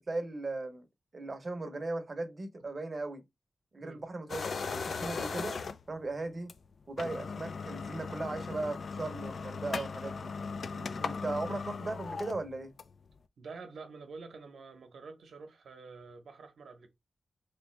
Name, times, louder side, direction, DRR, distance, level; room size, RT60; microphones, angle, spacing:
voice 1, 0.1-0.9 1.1-3.2 3.7-5.6 5.9-6.5 6.9-10.3 11.0-12.7, right 2 dB, 35° right, 0.7 m, -37 dB
sound 1, 4.3-6.0 6.5-6.6 6.9-13.1, left 4 dB, 60° left, 0.3 m, -38 dB
voice 2, 13.4-16.9, right 4 dB, 85° right, 0.8 m, -48 dB
3.3 x 2.7 x 3.2 m
wide cardioid pair, 135°, 0 cm